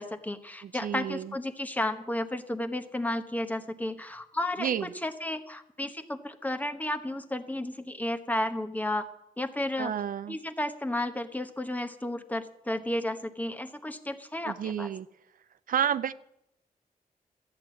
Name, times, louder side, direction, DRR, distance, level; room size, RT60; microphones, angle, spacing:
voice 1, 0.0-9.1 9.4-9.9 10.3-14.9, left 1 dB, 10° left, 7 dB, 1.1 m, -33 dB
voice 2, 0.6-1.3 4.6-4.9 9.8-10.4 14.4-15.1 15.7-16.1, right 9 dB, 65° right, 14 dB, 0.5 m, -30 dB
13.5 x 9.2 x 8.3 m, 0.80 s
wide cardioid pair, 115°, 15 cm